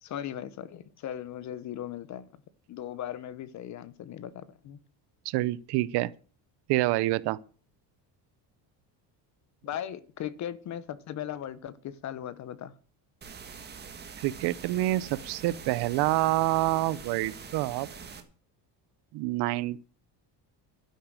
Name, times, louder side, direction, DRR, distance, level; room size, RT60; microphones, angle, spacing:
voice 1, 0.0-2.3 2.7-4.8 9.6-12.7, left 10 dB, 40° left, 1.0 m, -38 dB
voice 2, 5.2-6.1 6.7-7.4 14.2-17.9 19.1-19.9, right 17 dB, 65° right, 0.8 m, -27 dB
sound 1, 13.2-18.2, right 6 dB, 25° right, 1.7 m, -44 dB
12.0 x 10.0 x 6.3 m
cardioid pair, 170°, 43 cm